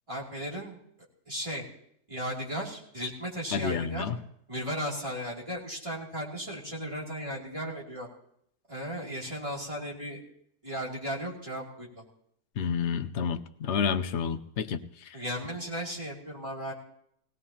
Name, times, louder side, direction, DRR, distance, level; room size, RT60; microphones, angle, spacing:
voice 1, 0.1-0.8 1.3-1.6 2.1-4.1 4.5-8.1 8.7-10.2 10.6-12.0 15.1-16.7, equal, 20° right, -4 dB, 2.9 m, -35 dB
voice 2, 3.5-4.2 12.6-14.8, left 6 dB, 55° left, 9 dB, 0.8 m, -29 dB
20.5 x 17.0 x 2.9 m, 0.70 s
omnidirectional pair, 1.7 m